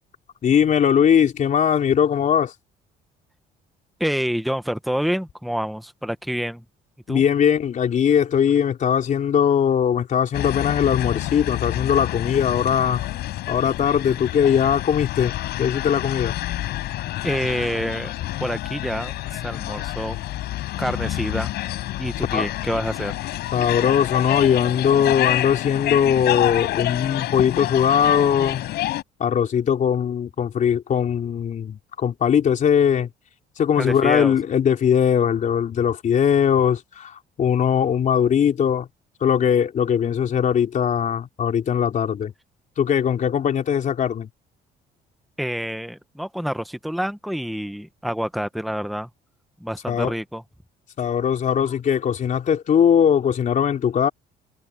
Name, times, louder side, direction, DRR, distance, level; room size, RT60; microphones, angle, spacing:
voice 1, 0.4-2.5 7.1-13.0 13.5-16.4 22.3-22.5 23.5-28.7 29.2-33.1 33.6-38.9 39.2-42.3 42.8-44.3 49.9-50.1 51.0-54.1, left 8 dB, 50° left, 3.7 m, -20 dB
voice 2, 4.0-6.6 7.1-7.2 17.2-18.1 18.4-20.2 20.8-21.5 22.0-23.2 33.8-34.3 45.4-49.1 49.6-50.4, equal, ahead, 1.3 m, -27 dB
sound 1, 10.3-29.0, left 15 dB, 75° left, 5.5 m, -28 dB
cardioid pair, 110°, 17 cm